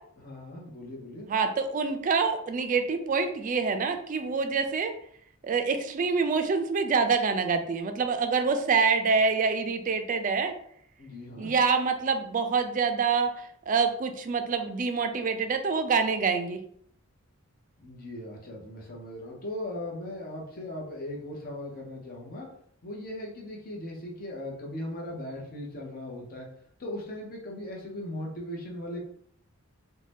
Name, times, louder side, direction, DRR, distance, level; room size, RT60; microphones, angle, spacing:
voice 1, 0.2-1.3 11.0-11.6 17.8-22.5 22.8-26.5 26.8-29.0, left 1 dB, 45° left, -1 dB, 0.7 m, -38 dB
voice 2, 1.3-4.9 5.4-10.5 11.4-16.6, right 5 dB, 35° right, 6 dB, 0.3 m, -26 dB
2.7 x 2.2 x 3.3 m, 0.65 s
head